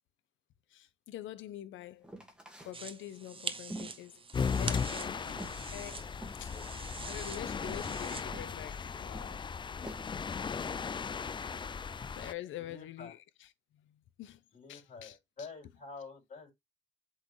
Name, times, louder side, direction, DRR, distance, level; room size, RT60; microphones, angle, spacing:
voice 1, 0.7-2.1 2.6-4.2 4.6-6.1 6.4-9.5 12.0-14.4 14.7-15.2, left 12 dB, 80° left, 0.8 m, -46 dB
sound 1, 2.0-2.8 3.2-5.1 5.4-5.6 6.2-6.8 7.2-7.3 7.6-8.5 9.1-10.0, right 1 dB, 5° right, 1.9 m, -47 dB
sound 2, 2.7-8.2, right 4 dB, 25° right, 0.8 m, -44 dB
sound 3, 4.3-12.3, left 6 dB, 25° left, 0.4 m, -37 dB
voice 2, 12.6-13.1 14.5-16.5, left 4 dB, 40° left, 3.8 m, -48 dB
7.7 x 4.0 x 3.2 m
cardioid pair, 90°, 20 cm